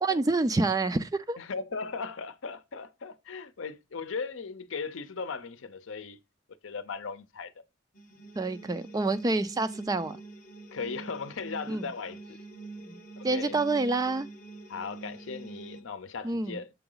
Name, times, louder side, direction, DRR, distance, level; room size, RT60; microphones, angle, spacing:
voice 1, 0.0-1.4 8.4-10.2 11.7-11.8 12.9-13.0 13.2-14.3 16.2-16.6, right 3 dB, 20° right, 0.3 m, -27 dB
voice 2, 1.4-6.2 6.6-7.5 10.7-12.4 13.2-13.6 14.7-16.7, left 5 dB, 70° left, 0.6 m, -37 dB
sound 1, 7.9-15.8, right 3 dB, 40° left, 0.9 m, -46 dB
6.9 x 3.9 x 3.8 m
head